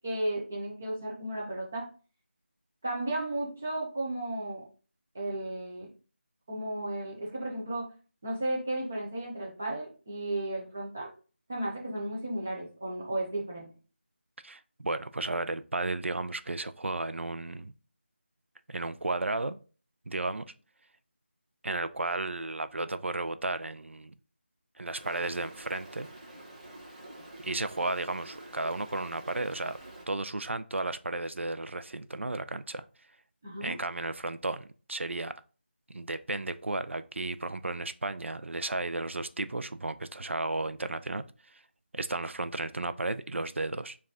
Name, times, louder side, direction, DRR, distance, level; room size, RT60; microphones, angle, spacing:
voice 1, 0.0-1.9 2.8-4.6 5.1-5.9 6.5-7.9 8.2-11.1 11.5-13.7 33.4-33.8, right 1 dB, 10° right, -2 dB, 0.3 m, -34 dB
voice 2, 14.4-17.7 18.7-19.6 20.1-20.4 21.6-24.1 24.8-26.1 27.4-29.8 30.1-32.9 33.6-35.3 35.9-41.6 41.9-44.0, right 2 dB, 85° right, 11 dB, 0.5 m, -33 dB
Stream, 25.0-30.1, right 1 dB, 30° right, 1.0 m, -48 dB
4.6 x 2.4 x 3.4 m, 0.37 s
figure-of-eight pair, 175°, 6 cm